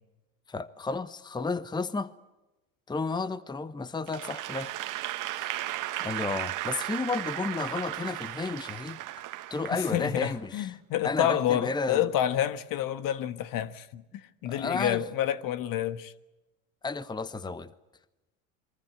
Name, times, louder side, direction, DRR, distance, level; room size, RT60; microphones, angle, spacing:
voice 1, 0.5-2.1 2.9-4.7 5.4-5.5 6.0-9.0 9.5-10.7 11.0-12.1 14.4-15.0 16.8-17.7, left 3 dB, 10° left, 1.1 m, -32 dB
Applause / Crowd, 4.1-10.3, right 15 dB, 50° right, 1.6 m, -35 dB
voice 2, 9.7-16.1, left 11 dB, 55° left, 1.5 m, -29 dB
28.0 x 23.5 x 7.9 m
hypercardioid pair, 90°, 41 cm